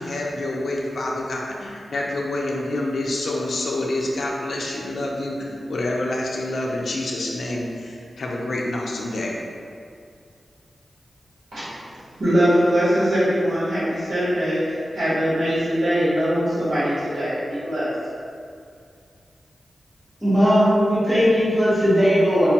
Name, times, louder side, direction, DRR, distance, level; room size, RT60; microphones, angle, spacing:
voice 1, 0.0-9.3, left 1 dB, 75° left, -2 dB, 0.5 m, -27 dB
voice 2, 12.2-17.9, equal, 75° right, -12 dB, 1.3 m, -21 dB
voice 3, 20.2-22.5, equal, 10° right, -11 dB, 1.0 m, -18 dB
4.4 x 2.2 x 2.8 m, 2.3 s
wide cardioid pair, 95°, 0 cm